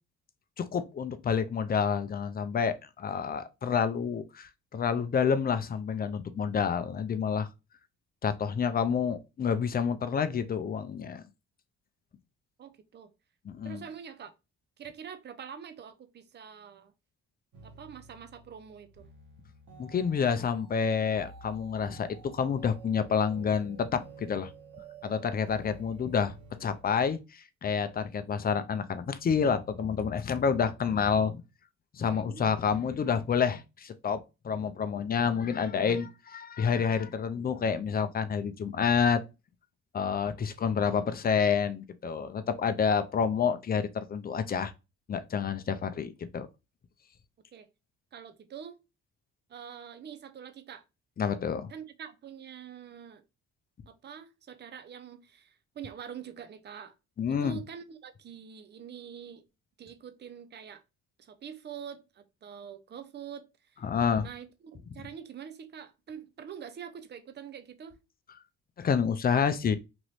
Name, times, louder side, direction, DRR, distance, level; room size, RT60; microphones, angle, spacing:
voice 1, 0.6-7.5 8.2-11.2 13.5-13.8 19.8-24.5 25.0-31.4 31.9-39.2 39.9-44.7 45.1-46.5 51.2-51.7 57.2-57.6 63.8-64.3 68.8-69.8, left 6 dB, 30° left, 0.5 m, -28 dB
voice 2, 12.6-13.1 13.6-14.3 14.8-16.9 17.6-19.1 32.0-32.5 47.5-47.7 48.1-48.8 49.5-50.8 51.7-53.2 53.9-56.9 57.3-59.4 59.8-60.8 61.2-63.8 64.2-68.0, right 8 dB, 35° right, 0.5 m, -45 dB
sound 1, 17.5-26.9, right 4 dB, 80° right, 1.2 m, -51 dB
3.0 x 2.5 x 3.0 m
cardioid pair, 90°, 30 cm